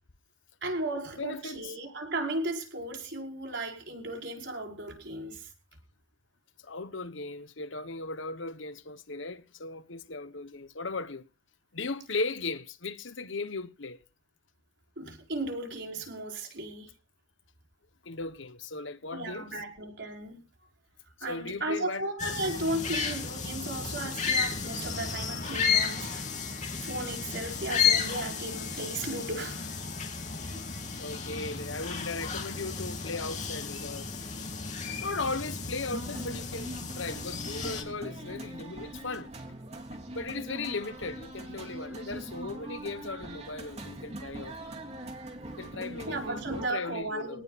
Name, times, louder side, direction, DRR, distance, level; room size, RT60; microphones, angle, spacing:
voice 1, 0.6-5.5 15.0-16.9 19.1-20.4 21.2-26.3 26.8-29.7 30.5-30.6 46.1-47.4, right 2 dB, 60° right, 5.5 m, -35 dB
voice 2, 1.2-1.7 6.6-11.3 11.7-14.0 18.0-19.5 21.3-22.1 31.0-34.2 35.0-39.3 40.1-44.6 45.5-47.4, left 3 dB, 70° left, 1.2 m, -37 dB
sound 1, 22.2-37.8, left 6 dB, 35° left, 3.0 m, -33 dB
sound 2, 23.2-36.3, left 1 dB, 55° left, 3.6 m, -49 dB
sound 3, 35.9-46.7, right 1 dB, 35° right, 3.4 m, -42 dB
24.5 x 18.5 x 2.5 m
head